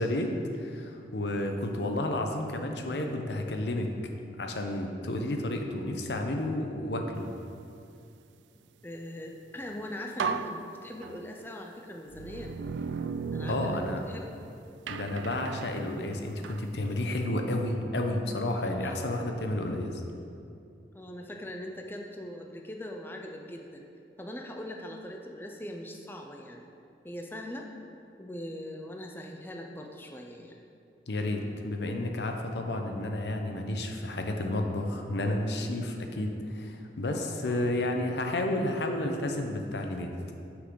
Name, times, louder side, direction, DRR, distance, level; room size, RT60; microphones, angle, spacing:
voice 1, 0.0-3.9 4.4-7.2 13.5-14.0 14.9-20.0 31.1-40.1, left 1 dB, 75° left, 4 dB, 0.8 m, -31 dB
voice 2, 8.8-12.6 13.3-14.3 18.8-19.1 20.9-23.9 24.2-26.6 27.0-27.7 28.2-30.6 37.0-37.7, left 1 dB, 10° left, 2 dB, 0.4 m, -41 dB
sound 1, 9.6-9.7 10.2-11.5 12.1-14.5 14.9-16.7, right 5 dB, 85° right, 0.3 m, -36 dB
9.6 x 6.0 x 3.8 m, 2.6 s
head